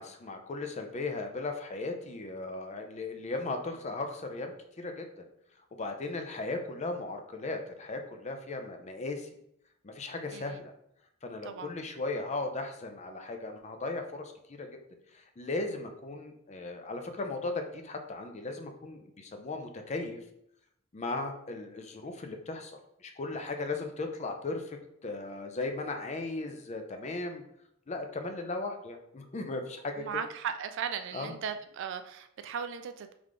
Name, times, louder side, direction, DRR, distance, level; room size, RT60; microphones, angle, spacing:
voice 1, 0.0-5.1 5.8-9.3 9.8-10.7 11.2-14.3 14.6-14.7 15.1-20.2 20.9-27.4 27.9-30.0 31.1-31.3, left 3 dB, 35° left, 5 dB, 0.5 m, -37 dB
voice 2, 30.0-33.1, right 7 dB, 60° right, 8 dB, 0.3 m, -37 dB
3.5 x 3.3 x 3.6 m, 0.75 s
head